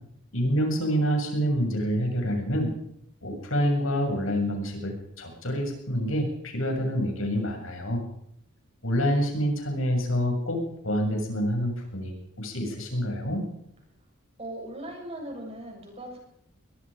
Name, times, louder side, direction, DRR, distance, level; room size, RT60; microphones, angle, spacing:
voice 1, 0.3-2.7 3.2-8.0 8.8-10.6 10.8-13.4, equal, 75° left, 2 dB, 7.2 m, -27 dB
voice 2, 14.4-16.2, right 1 dB, 30° right, 1 dB, 7.1 m, -38 dB
23.5 x 21.5 x 5.2 m, 0.72 s
head